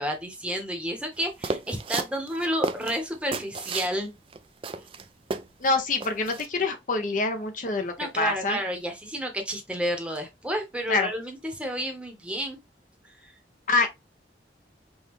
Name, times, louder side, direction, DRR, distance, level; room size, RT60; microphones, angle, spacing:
voice 1, 0.0-4.1 8.0-12.6 13.2-13.3, equal, 5° right, 0.9 m, -31 dB
sound 1, 1.4-3.9 4.3-4.4 4.6-5.7 6.0-6.5, right 4 dB, 30° right, 0.3 m, -32 dB
voice 2, 5.6-8.6 10.9-11.1 13.7-13.9, left 3 dB, 45° left, 0.6 m, -26 dB
5.4 x 2.3 x 3.0 m
head